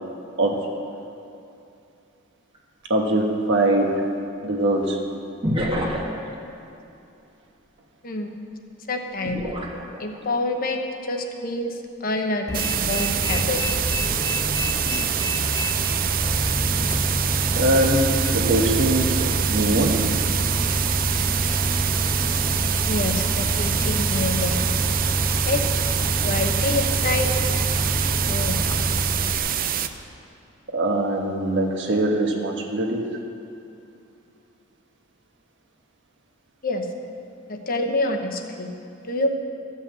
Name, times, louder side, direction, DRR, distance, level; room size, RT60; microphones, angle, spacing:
sound 1, 2.6-2.7 5.4-6.3 9.3-10.4 10.9-11.2, equal, 30° right, 1.2 m, -27 dB
voice 1, 2.9-4.0 4.4-5.0 17.6-20.1 30.7-33.0, right 1 dB, 65° right, 2 dB, 1.3 m, -22 dB
voice 2, 8.9-9.4 10.0-13.6 14.0-14.1 22.9-24.7 25.5-25.6 26.2-27.3 28.3-28.6 36.6-36.9 37.5-38.7 39.1-39.4, left 2 dB, 45° left, 3 dB, 1.0 m, -27 dB
Bus, 12.5-29.4, equal, 20° left, 0.9 m, -26 dB
sound 2, 12.5-29.9, right 9 dB, 45° right, 0.5 m, -26 dB
13.5 x 5.7 x 7.5 m, 2.7 s
head